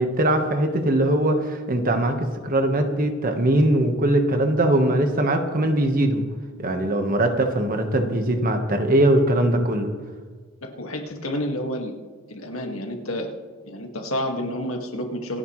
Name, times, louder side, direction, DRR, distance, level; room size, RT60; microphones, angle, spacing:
voice 1, 0.0-6.2 6.6-9.9, right 1 dB, 40° right, 5 dB, 1.4 m, -21 dB
voice 2, 10.6-11.9 12.3-13.3 13.6-15.4, equal, 75° left, 2 dB, 2.0 m, -29 dB
27.0 x 9.6 x 3.2 m, 1.5 s
head